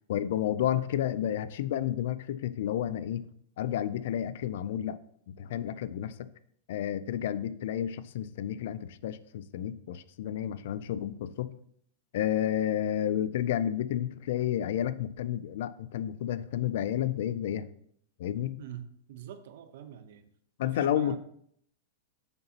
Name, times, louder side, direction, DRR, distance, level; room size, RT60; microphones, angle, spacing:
voice 1, 0.1-3.2 3.6-5.0 5.3-6.3 6.7-11.5 12.1-17.7 18.2-18.6 20.6-21.2, left 11 dB, 50° left, 15 dB, 0.4 m, -31 dB
voice 2, 18.6-20.3 20.6-21.2, right 10 dB, 50° right, 10 dB, 0.7 m, -45 dB
8.1 x 6.7 x 2.8 m, 0.67 s
supercardioid pair, 180°, 0 cm